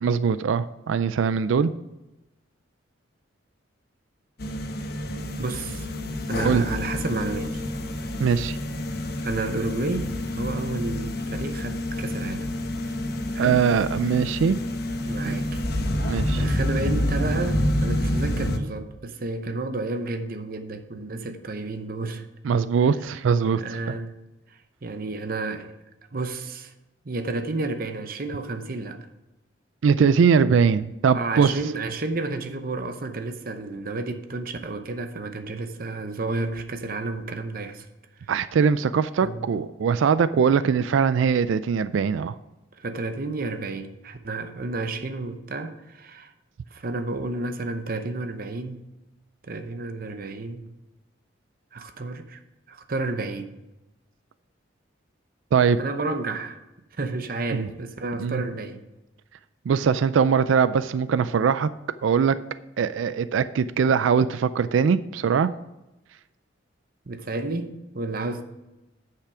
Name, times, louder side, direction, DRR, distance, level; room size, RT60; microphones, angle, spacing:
voice 1, 0.0-1.7 6.4-6.6 8.2-8.6 13.4-14.6 15.2-15.4 16.1-16.4 22.4-23.6 23.9-24.0 29.8-31.5 38.3-42.4 55.5-55.8 57.5-57.7 58.2-58.4 59.7-61.7 62.0-62.4 62.8-65.5, right 6 dB, 85° right, 0.4 m, -21 dB
sound 1, 4.4-18.6, left 1 dB, 55° left, 0.9 m, -28 dB
voice 2, 5.4-5.9 6.3-7.6 9.2-12.5 13.3-13.6 15.0-15.6 16.4-22.2 23.6-24.1 24.5-25.7 26.1-26.7 27.0-29.0 31.1-37.9 39.2-39.5 42.8-46.3 46.7-48.9 49.4-50.7 51.7-52.4 52.7-53.5 55.8-56.6 57.0-58.8 67.1-68.4, right 3 dB, 50° right, 0.8 m, -31 dB
10.0 x 5.7 x 4.9 m
head